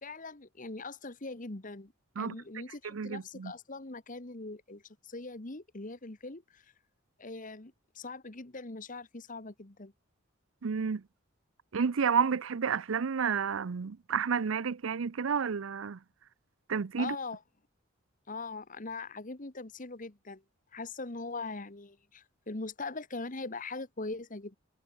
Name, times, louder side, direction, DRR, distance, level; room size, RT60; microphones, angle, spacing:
voice 1, 0.0-6.6 7.2-9.9 17.0-17.4 18.3-20.4 20.7-24.6, left 3 dB, 40° left, 1.5 m, -41 dB
voice 2, 2.8-3.5 10.6-11.0 11.7-16.0 16.7-17.2, right 6 dB, 85° right, 0.5 m, -30 dB
head